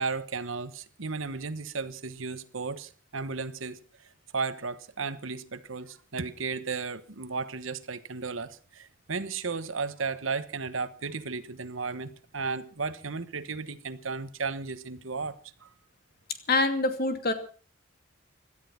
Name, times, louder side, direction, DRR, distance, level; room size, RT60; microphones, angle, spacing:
voice 1, 0.0-3.8 4.3-15.7, right 4 dB, 75° right, 1.2 m, -34 dB
voice 2, 16.5-17.3, left 3 dB, 50° left, 2.5 m, -25 dB
17.5 x 13.0 x 5.8 m
head